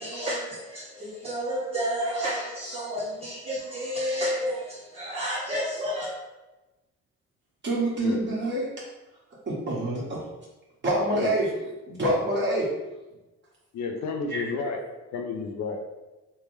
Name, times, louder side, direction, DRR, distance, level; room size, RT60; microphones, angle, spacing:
voice 1, 0.0-6.1, equal, 20° right, 0.5 m, -31 dB
voice 2, 7.6-8.8 9.5-10.2 10.8-11.5 11.9-12.7 14.3-14.4, right 1 dB, 35° right, 1.4 m, -26 dB
voice 3, 13.7-14.8 15.1-15.8, left 4 dB, 65° left, 0.6 m, -31 dB
3.3 x 2.1 x 3.2 m
cardioid pair, 90°, 30 cm